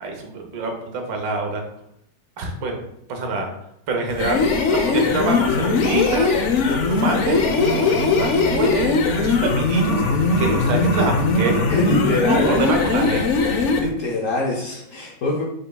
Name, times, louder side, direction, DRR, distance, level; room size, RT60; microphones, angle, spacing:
voice 1, 0.0-1.6 2.4-2.8 3.1-3.5 3.9-6.3 6.7-7.4 7.8-10.0 10.4-12.0 12.3-13.3, right 3 dB, 80° right, 3 dB, 1.6 m, -25 dB
sound 1, 4.1-13.9, left 4 dB, 75° left, 0.6 m, -20 dB
sound 2, 7.2-12.7, right 2 dB, 35° right, 1.3 m, -33 dB
voice 2, 11.6-15.5, left 2 dB, 60° left, -2 dB, 0.9 m, -25 dB
5.2 x 4.5 x 2.3 m, 0.76 s
omnidirectional pair, 2.0 m